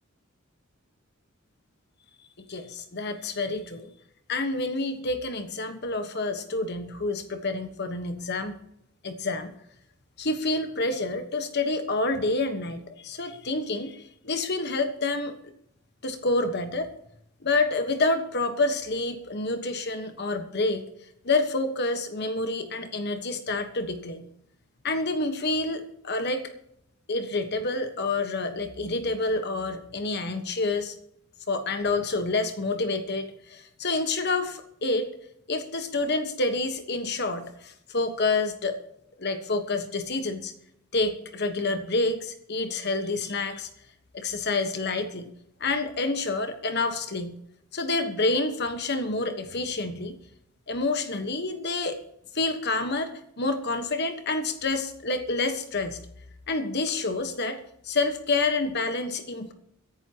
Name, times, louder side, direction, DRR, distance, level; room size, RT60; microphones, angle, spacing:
voice 1, 2.4-3.9 4.3-8.6 9.0-9.5 10.2-15.3 16.0-16.9 17.4-20.8 21.2-24.2 24.8-26.5 27.1-30.9 31.5-35.1 35.5-38.8 39.2-40.5 40.9-43.7 44.1-45.3 45.6-47.4 47.7-50.2 50.7-52.0 52.3-56.0 56.5-57.6 57.8-59.5, left 3 dB, 55° left, 8 dB, 1.4 m, -28 dB
23.5 x 11.0 x 3.0 m, 0.75 s
head